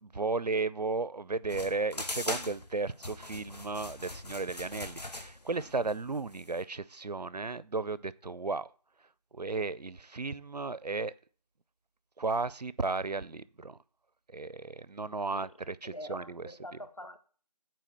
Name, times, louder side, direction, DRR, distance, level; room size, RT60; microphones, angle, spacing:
voice 1, 0.0-8.7 9.3-11.1 12.2-13.8 14.3-16.5, right 3 dB, 80° right, 0.5 m, -34 dB
sound 1, 1.5-6.6, left 2 dB, 80° left, 1.1 m, -41 dB
voice 2, 15.8-17.2, left 1 dB, 55° left, 1.1 m, -45 dB
7.5 x 4.6 x 6.8 m
figure-of-eight pair, 175°, 21 cm